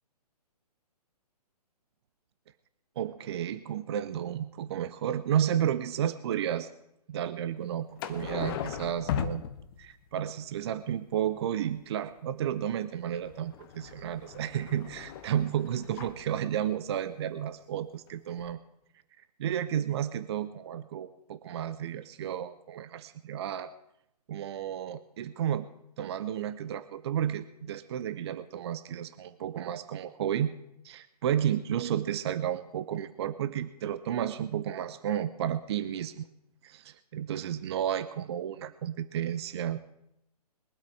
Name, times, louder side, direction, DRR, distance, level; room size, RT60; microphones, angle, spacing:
voice 1, 3.0-6.7 7.1-9.4 9.8-18.6 19.4-23.7 24.3-25.7 26.0-30.5 30.8-36.3 36.6-39.8, right 10 dB, 40° right, 13 dB, 0.7 m, -32 dB
sound 1, 8.0-10.1 13.0-16.2 18.1-18.2 18.4-18.5, left 9 dB, 35° left, 1.1 m, -38 dB
22.0 x 8.3 x 4.7 m, 0.81 s
figure-of-eight pair, 130°, 21 cm